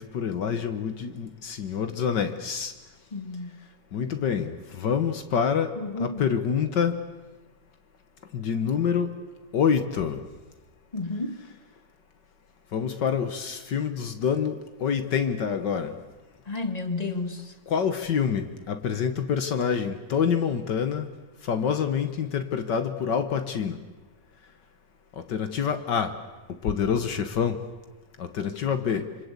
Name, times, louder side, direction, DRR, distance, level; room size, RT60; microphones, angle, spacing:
voice 1, 0.0-2.7 3.9-5.7 6.0-7.0 8.3-9.2 9.5-10.2 12.7-15.9 17.7-21.1 21.4-23.8 25.2-26.2 26.6-27.6 28.2-29.1, left 7 dB, 65° left, 9 dB, 1.9 m, -26 dB
voice 2, 3.1-3.5 5.8-6.3 10.9-11.4 16.5-17.5, left 3 dB, 20° left, 9 dB, 1.5 m, -31 dB
26.5 x 26.0 x 8.2 m, 1.2 s
omnidirectional pair, 2.1 m